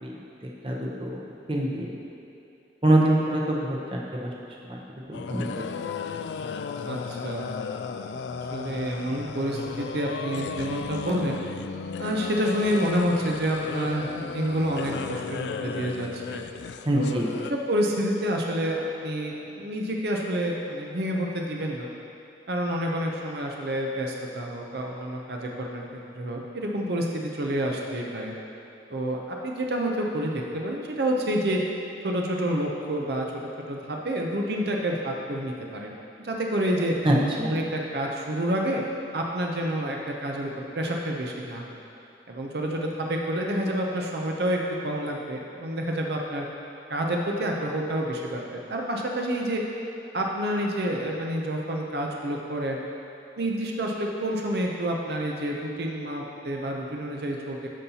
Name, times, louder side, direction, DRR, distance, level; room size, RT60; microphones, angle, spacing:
voice 1, 0.0-1.2 1.5-2.0 2.8-4.3 4.6-5.5 16.8-17.3 37.0-37.5, right 1 dB, 30° right, -2 dB, 0.8 m, -25 dB
sound 1, 5.1-17.5, left 5 dB, 80° left, 0.3 m, -35 dB
voice 2, 6.8-7.7 8.4-11.4 12.0-16.4 16.9-21.9 22.5-25.8 26.1-28.3 28.9-31.6 32.0-37.0 37.4-38.8 39.1-41.8 42.3-46.4 46.9-49.6 50.1-52.8 53.4-57.7, right 1 dB, 65° right, 0 dB, 0.6 m, -28 dB
12.5 x 5.5 x 2.8 m, 2.8 s
head